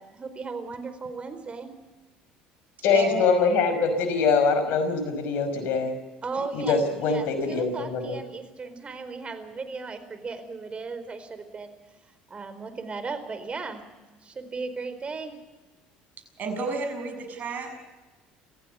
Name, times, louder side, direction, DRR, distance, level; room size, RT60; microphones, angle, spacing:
voice 1, 0.0-1.7 6.2-6.8 7.1-11.7 12.3-13.8 14.1-15.4, right 4 dB, 30° right, 10 dB, 4.3 m, -36 dB
voice 2, 2.8-5.9 6.5-8.2, left 4 dB, 65° left, 9 dB, 5.5 m, -23 dB
voice 3, 16.4-17.8, right 3 dB, 50° right, 6 dB, 7.0 m, -31 dB
27.0 x 15.5 x 8.1 m, 1.2 s
hypercardioid pair, 75°, 4 cm